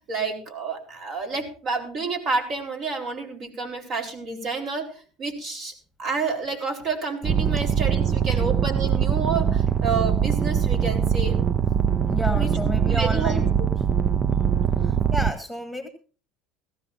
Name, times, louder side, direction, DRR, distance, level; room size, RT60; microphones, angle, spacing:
voice 1, 0.0-5.7 6.0-11.4 12.3-12.5 12.8-13.7, right 4 dB, 45° right, 4 dB, 4.5 m, -29 dB
sound 1, 7.2-15.3, right 8 dB, 30° right, 0.5 m, -22 dB
voice 2, 12.1-13.6 14.8-15.9, left 1 dB, ahead, 6 dB, 2.0 m, -31 dB
17.5 x 15.0 x 2.8 m, 0.37 s
supercardioid pair, 95°, 0 cm